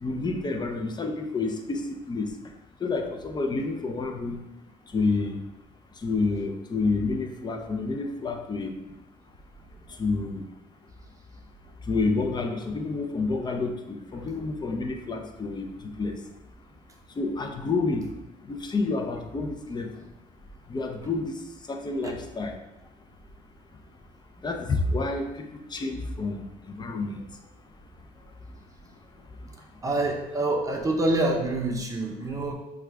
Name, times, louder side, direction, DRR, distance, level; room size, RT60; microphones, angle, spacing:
voice 1, 0.0-2.3 2.8-4.4 4.9-5.4 6.0-8.7 10.0-10.4 11.9-16.1 17.2-18.0 18.5-19.9 20.7-21.4 21.7-22.5 24.4-27.2, left 3 dB, 25° left, 4 dB, 0.6 m, -29 dB
voice 2, 29.8-32.5, right 2 dB, 20° right, 1 dB, 0.8 m, -27 dB
6.0 x 2.4 x 3.4 m, 0.95 s
cardioid pair, 95°, 16 cm